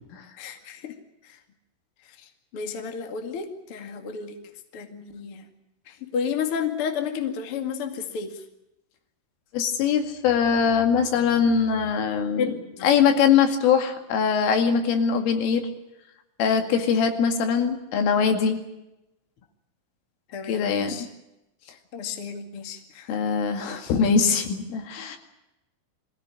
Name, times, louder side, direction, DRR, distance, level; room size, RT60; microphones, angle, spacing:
voice 1, 0.4-1.0 2.5-4.4 4.7-5.4 5.9-8.4 12.4-12.9 20.3-21.1 21.9-23.1, left 6 dB, 45° left, 5 dB, 1.9 m, -31 dB
voice 2, 9.5-12.5 12.8-15.7 16.4-18.6 20.5-21.1 23.1-25.2, left 6 dB, 80° left, 5 dB, 4.7 m, -22 dB
24.5 x 16.0 x 9.8 m, 0.94 s
omnidirectional pair, 5.7 m